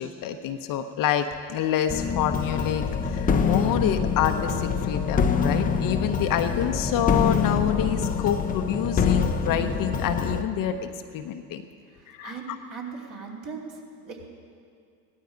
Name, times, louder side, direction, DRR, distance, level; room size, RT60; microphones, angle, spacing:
voice 1, 0.0-11.6 12.1-12.6, left 9 dB, 45° left, 7 dB, 0.9 m, -27 dB
sound 1, 1.9-10.4, left 5 dB, 15° left, 0.7 m, -25 dB
voice 2, 11.9-13.8 14.0-14.3, right 5 dB, 40° right, -2 dB, 2.9 m, -39 dB
16.5 x 12.5 x 5.2 m, 2.3 s
hypercardioid pair, 95°, 48 cm